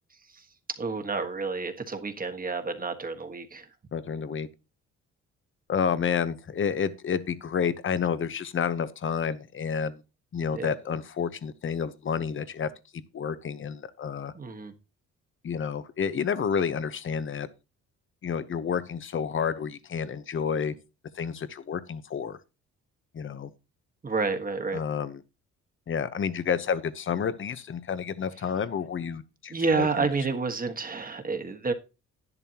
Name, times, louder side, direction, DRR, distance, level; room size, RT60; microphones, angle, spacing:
voice 1, 0.1-0.5 0.8-3.7 10.5-10.7 14.3-14.7 24.0-24.8 29.5-31.7, right 4 dB, 30° right, 1.6 m, -29 dB
voice 2, 3.9-4.5 5.7-10.0 10.3-12.7 13.1-14.3 15.4-17.5 18.2-20.8 21.1-22.4 23.1-23.5 24.7-25.2 25.9-30.1, left 7 dB, 40° left, 1.0 m, -30 dB
11.0 x 10.5 x 2.9 m
cardioid pair, 90°, 30 cm